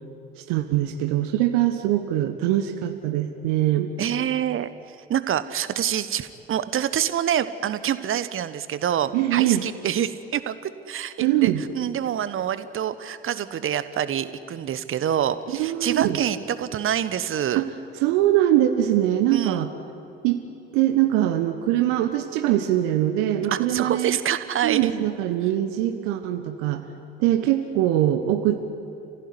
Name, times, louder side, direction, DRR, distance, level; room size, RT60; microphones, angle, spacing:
voice 1, 0.3-3.9 9.1-9.6 11.2-11.6 15.6-16.2 17.5-17.7 18.0-19.7 20.2-20.4 20.7-24.2 24.6-26.8 27.2-28.6, right 13 dB, 65° right, 7 dB, 1.3 m, -22 dB
voice 2, 4.0-17.6 19.3-19.7 23.5-24.8, right 10 dB, 45° right, 13 dB, 1.3 m, -26 dB
30.0 x 16.0 x 9.8 m, 2.8 s
figure-of-eight pair, 50°, 30 cm